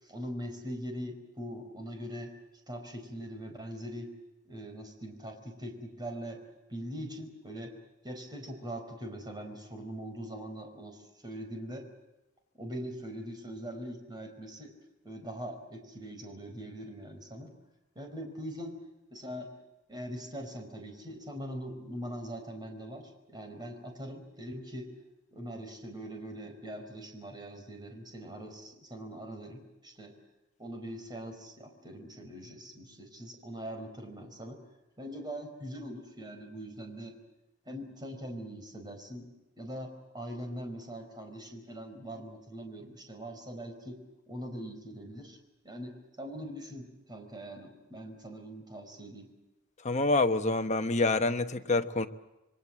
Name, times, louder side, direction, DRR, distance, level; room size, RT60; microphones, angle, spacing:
voice 1, 0.0-2.3 2.7-4.1 4.5-6.4 6.7-7.7 8.0-11.8 12.6-14.7 15.0-17.5 17.9-18.8 19.1-19.5 19.9-24.9 25.3-30.1 30.6-34.6 35.0-37.2 37.7-39.3 39.6-44.0 44.3-45.4 45.6-49.3, equal, 20° right, 4.6 m, -42 dB
voice 2, 49.8-52.1, left 2 dB, 35° left, 1.2 m, -27 dB
27.0 x 23.0 x 7.6 m
head